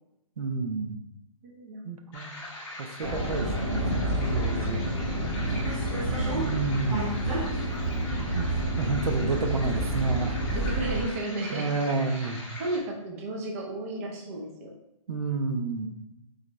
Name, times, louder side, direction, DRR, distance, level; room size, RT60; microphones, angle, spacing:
voice 1, 0.4-1.0 1.8-2.3 2.8-4.8 6.2-7.1 8.3-8.5 8.8-10.4 11.5-12.4 15.1-15.9, right 3 dB, 90° right, 6 dB, 0.6 m, -30 dB
voice 2, 1.4-1.8 6.1-6.5 10.5-11.8 12.1-14.7, right 2 dB, 25° right, 1 dB, 0.5 m, -35 dB
sound 1, 2.1-12.8, left 1 dB, 15° left, 0.7 m, -42 dB
Subway metro underground, 3.0-11.0, right 1 dB, 70° right, 1.2 m, -28 dB
3.9 x 3.1 x 3.0 m, 0.88 s
hypercardioid pair, 160°, 18 cm